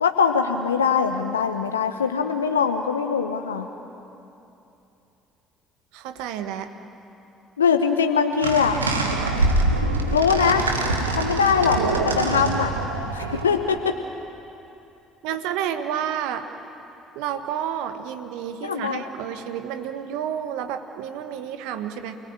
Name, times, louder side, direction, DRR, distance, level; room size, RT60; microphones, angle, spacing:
voice 1, 0.0-3.7 7.6-8.8 10.1-10.7 11.2-11.8 12.0-12.7 13.1-13.9 18.6-19.0, left 6 dB, 85° left, 6 dB, 0.8 m, -22 dB
voice 2, 5.9-6.7 15.2-16.5 17.1-22.2, right 9 dB, 65° right, 8 dB, 1.4 m, -30 dB
sound 1, 8.4-13.8, right 2 dB, 85° right, 1.5 m, -24 dB
28.5 x 19.0 x 9.0 m, 2.9 s
figure-of-eight pair, 55°, 0 cm